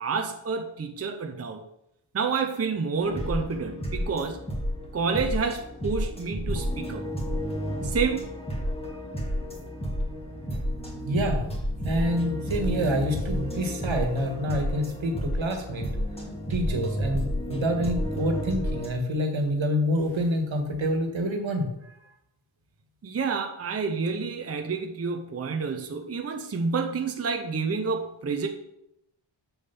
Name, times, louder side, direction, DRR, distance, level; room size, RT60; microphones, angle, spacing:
voice 1, 0.0-1.6 2.1-4.4 4.9-7.0 7.8-8.2 23.0-28.5, right 5 dB, 30° right, 4 dB, 0.7 m, -29 dB
sound 1, 3.0-18.9, equal, 10° left, 2.1 m, -31 dB
voice 2, 11.0-11.4 11.8-15.9 16.5-22.0, equal, 70° right, 4 dB, 1.7 m, -27 dB
7.2 x 6.8 x 5.8 m, 0.82 s
wide cardioid pair, 155°, 48 cm